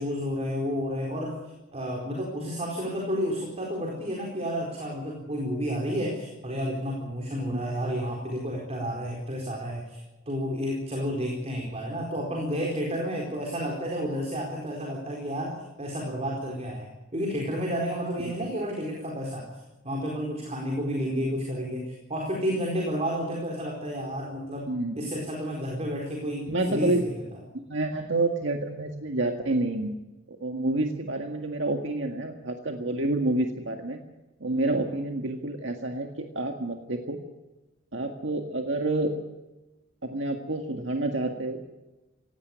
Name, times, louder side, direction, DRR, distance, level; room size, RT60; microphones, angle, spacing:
voice 1, 0.0-19.5 19.8-24.7 25.0-27.2, equal, 35° right, 0 dB, 4.3 m, -31 dB
voice 2, 26.5-27.1 27.5-30.0 30.3-34.0 34.4-37.2 37.9-39.1 40.0-41.6, right 2 dB, 70° right, 3 dB, 1.9 m, -28 dB
18.5 x 17.0 x 9.4 m, 1.1 s
head